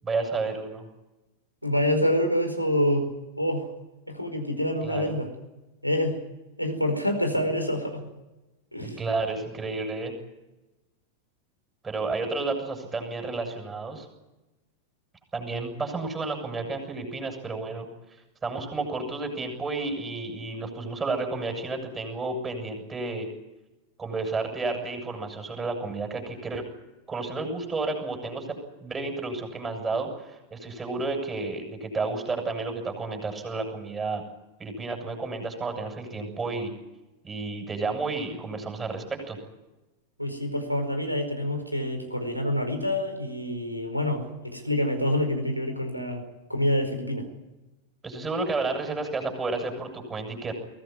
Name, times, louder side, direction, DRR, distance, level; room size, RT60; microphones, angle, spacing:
voice 1, 0.0-0.8 4.8-5.1 8.8-10.1 11.8-14.1 15.3-17.9 18.4-23.3 24.0-26.6 27.1-34.2 34.6-36.7 37.2-39.4 48.0-50.5, right 3 dB, 15° right, 4 dB, 7.4 m, -31 dB
voice 2, 1.6-3.1 3.4-3.7 4.1-5.3 5.8-6.2 6.6-8.1 8.7-9.0 40.2-46.2 46.5-47.2, left 1 dB, 90° right, 7 dB, 4.8 m, -26 dB
23.5 x 18.0 x 9.8 m, 1.0 s
figure-of-eight pair, 90°, 0 cm